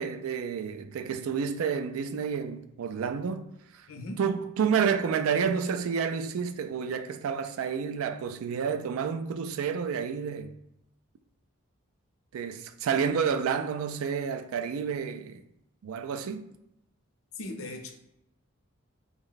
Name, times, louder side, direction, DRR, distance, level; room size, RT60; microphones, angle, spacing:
voice 1, 0.0-3.5 3.8-3.9 4.2-10.5 12.3-15.4 15.8-16.4, right 6 dB, 80° right, 0.3 m, -30 dB
voice 2, 3.9-4.2 17.3-17.9, left 1 dB, 80° left, 0.6 m, -38 dB
3.5 x 2.1 x 3.8 m
head